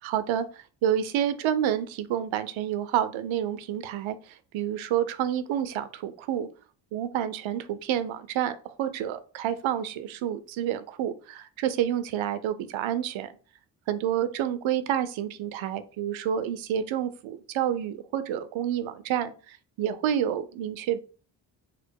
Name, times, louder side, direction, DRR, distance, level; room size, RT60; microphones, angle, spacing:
voice 1, 0.0-6.5 6.9-13.3 13.9-21.0, right 10 dB, 75° right, 12 dB, 0.7 m, -29 dB
5.0 x 2.0 x 4.5 m, 0.38 s
supercardioid pair, 60°, 47 cm